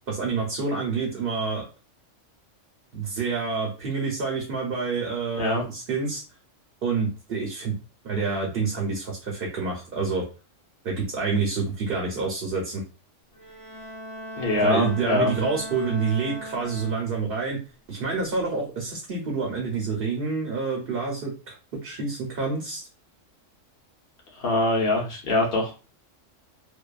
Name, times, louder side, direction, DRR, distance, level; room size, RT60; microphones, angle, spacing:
voice 1, 0.1-1.6 2.9-6.2 6.8-7.7 8.0-10.2 10.8-12.8 14.6-17.6 17.9-21.5 21.8-22.9, right 4 dB, 55° right, -1 dB, 0.8 m, -28 dB
Bowed string instrument, 13.3-17.4, right 1 dB, 35° left, 0.4 m, -39 dB
voice 2, 14.4-15.3 24.4-25.7, left 2 dB, 55° left, -1 dB, 1.0 m, -23 dB
2.6 x 2.2 x 2.3 m, 0.33 s
omnidirectional pair, 1.3 m